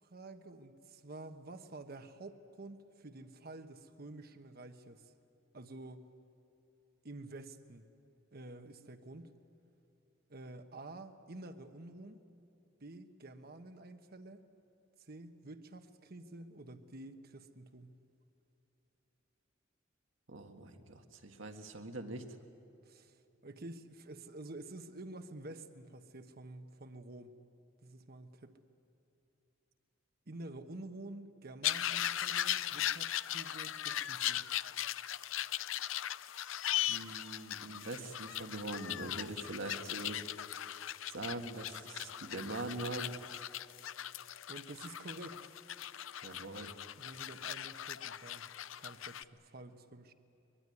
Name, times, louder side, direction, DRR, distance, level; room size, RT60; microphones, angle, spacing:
voice 1, 0.0-5.0 5.5-6.1 7.0-7.8 8.3-9.3 10.3-12.2 12.8-14.4 15.1-18.0 22.8-23.2 23.4-27.3 27.8-28.6 30.3-34.5 44.5-45.6 47.0-48.5 48.8-50.1, right 2 dB, 50° right, 8 dB, 1.2 m, -49 dB
voice 2, 20.3-22.3 36.9-40.2 41.1-43.2 46.2-46.7, right 2 dB, 75° right, 5 dB, 1.9 m, -43 dB
sound 1, 31.6-49.2, left 12 dB, 80° left, 0.6 m, -38 dB
23.0 x 22.5 x 9.6 m, 2.8 s
head